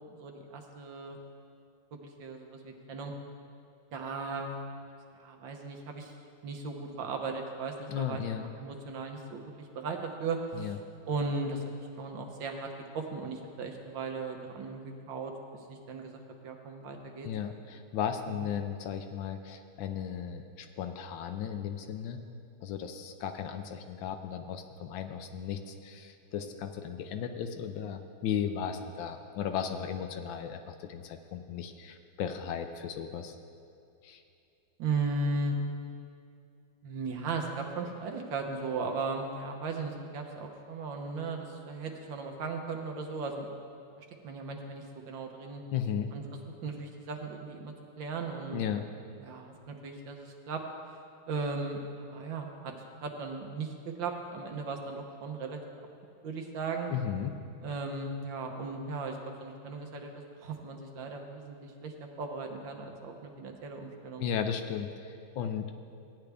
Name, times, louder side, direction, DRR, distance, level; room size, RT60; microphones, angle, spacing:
voice 1, 0.1-1.2 1.9-3.1 3.9-4.6 5.2-6.1 6.4-8.2 8.6-10.7 11.1-11.6 12.0-17.3 18.3-18.5 34.8-35.6 36.8-43.5 44.0-45.6 46.1-46.2 46.6-48.7 49.2-50.6 51.3-52.7 53.0-55.6 56.2-56.9 57.6-64.3, right 3 dB, 70° right, 3 dB, 1.7 m, -37 dB
voice 2, 7.9-8.5 10.5-10.8 17.2-22.2 22.6-33.4 34.0-34.2 45.7-46.1 48.5-48.9 56.9-57.3 64.2-65.7, left 8 dB, 75° left, 7 dB, 1.4 m, -35 dB
15.5 x 9.6 x 3.4 m, 2.5 s
omnidirectional pair, 2.2 m